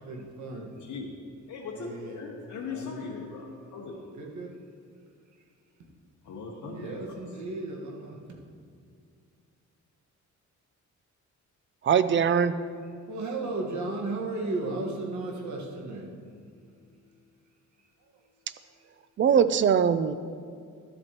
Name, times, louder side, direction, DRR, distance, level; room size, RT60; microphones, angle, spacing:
voice 1, 0.0-0.9 1.7-2.2 2.6-3.2 4.2-4.6 6.6-8.4 12.7-16.1 18.0-18.1, right 2 dB, 65° right, 1.5 m, -35 dB
voice 2, 0.8-1.1 1.5-4.0 6.2-7.2, left 4 dB, 70° left, 1.1 m, -39 dB
voice 3, 11.8-12.6 19.2-20.1, right 7 dB, 40° right, 0.4 m, -22 dB
12.5 x 7.8 x 3.0 m
cardioid pair, 110°, 30 cm